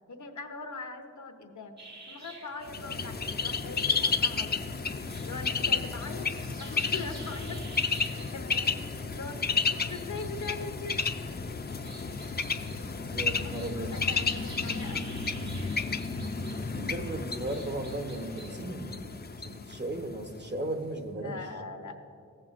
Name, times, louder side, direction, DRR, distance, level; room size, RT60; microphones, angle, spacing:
voice 1, 0.1-1.7 2.1-3.1 3.4-4.8 5.2-6.3 6.6-7.6 8.3-11.1 13.4-15.1 16.6-16.9 21.2-22.0, left 3 dB, 80° left, 6 dB, 0.8 m, -41 dB
sound 1, 1.8-18.7, right 2 dB, 65° right, 1.6 m, -51 dB
Bird, 2.7-20.4, left 4 dB, 35° left, 0.4 m, -32 dB
voice 2, 13.1-13.9 16.5-19.1 19.4-21.4, right 1 dB, 35° right, 4 dB, 0.9 m, -36 dB
15.5 x 7.6 x 2.5 m, 2.4 s
wide cardioid pair, 75°, 30 cm